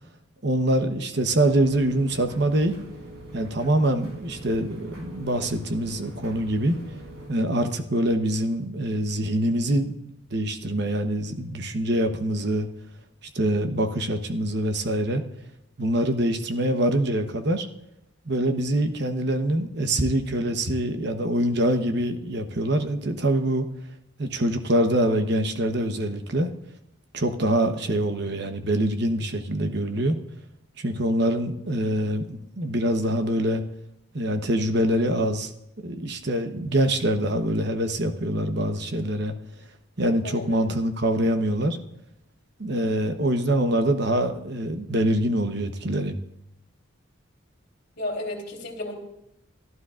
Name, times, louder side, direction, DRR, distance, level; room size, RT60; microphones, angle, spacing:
voice 1, 0.4-2.8 3.3-6.8 7.3-10.0 10.3-12.7 13.3-15.2 15.8-17.7 18.3-23.7 24.2-26.5 27.1-30.2 30.8-33.6 34.1-35.5 35.8-39.3 40.0-41.8 42.6-46.2, right 1 dB, 50° right, 7 dB, 1.0 m, -24 dB
sound 1, 1.4-7.3, equal, 85° right, 4.7 m, -43 dB
voice 2, 40.2-40.6 48.0-48.9, left 1 dB, 55° left, 0 dB, 3.2 m, -33 dB
29.0 x 12.5 x 2.5 m, 0.82 s
head